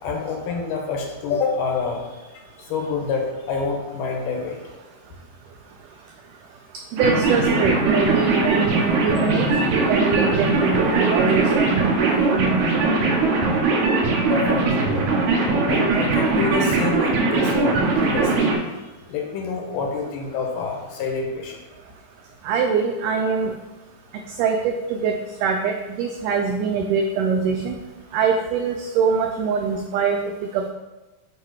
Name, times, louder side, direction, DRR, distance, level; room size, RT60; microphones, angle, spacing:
voice 1, 0.0-2.2 2.6-4.6 14.3-14.9 15.7-18.4 19.1-21.6, left 4 dB, 75° left, 1 dB, 2.2 m, -27 dB
voice 2, 6.9-12.9 22.4-23.5 24.4-27.8 28.1-30.7, right 5 dB, 85° right, 4 dB, 1.8 m, -23 dB
sound 1, 7.0-18.6, right 3 dB, 70° right, 1.9 m, -20 dB
8.5 x 2.9 x 4.7 m, 1.1 s
omnidirectional pair, 4.1 m